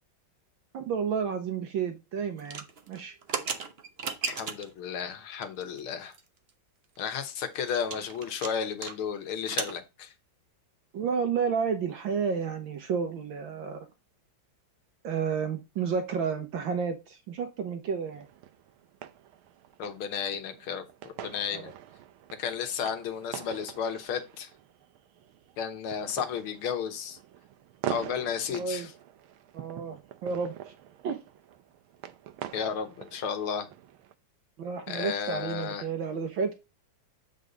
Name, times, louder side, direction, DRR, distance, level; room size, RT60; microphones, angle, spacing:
voice 1, 0.7-3.1 10.9-13.9 15.0-18.3 21.5-21.7 28.5-28.9 29.5-30.7 31.0-31.2 34.6-36.5, right 6 dB, 70° right, 1.7 m, -31 dB
sound 1, 2.4-4.8 5.4-5.8 6.1-6.2 6.5-6.6 6.9-9.0 9.2-9.8, right 5 dB, 45° right, 0.8 m, -35 dB
voice 2, 4.3-6.1 7.0-10.1 19.8-21.7 22.4-24.5 25.6-27.2 27.9-28.9 32.5-33.7 34.9-35.8, left 7 dB, 85° left, 2.0 m, -33 dB
sound 2, 18.1-34.1, right 11 dB, 85° right, 1.6 m, -44 dB
8.0 x 4.8 x 3.9 m
omnidirectional pair, 2.3 m